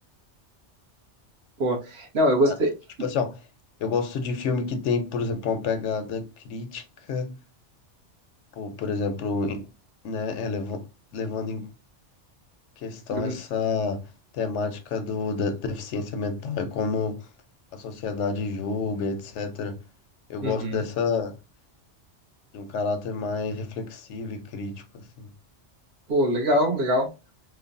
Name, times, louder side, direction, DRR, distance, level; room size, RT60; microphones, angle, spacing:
voice 1, 1.6-2.7 13.1-13.4 20.4-20.8 26.1-27.1, equal, 60° right, 1.1 m, -23 dB
voice 2, 3.0-3.4 3.8-6.8 7.1-7.4 8.6-9.7 10.0-10.9 11.1-11.7 12.8-14.1 14.3-17.2 17.7-19.8 20.3-21.3 22.5-25.3, left 4 dB, 80° left, 0.9 m, -29 dB
3.1 x 2.1 x 2.5 m
omnidirectional pair, 1.2 m